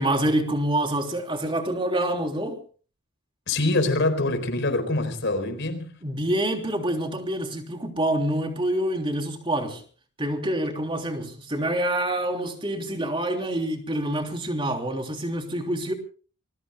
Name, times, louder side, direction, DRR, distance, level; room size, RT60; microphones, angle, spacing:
voice 1, 0.0-2.6 6.0-9.8 10.2-15.9, right 1 dB, 25° right, 3.4 m, -26 dB
voice 2, 3.5-5.9, left 2 dB, 55° left, 4.6 m, -24 dB
29.0 x 21.5 x 2.3 m
head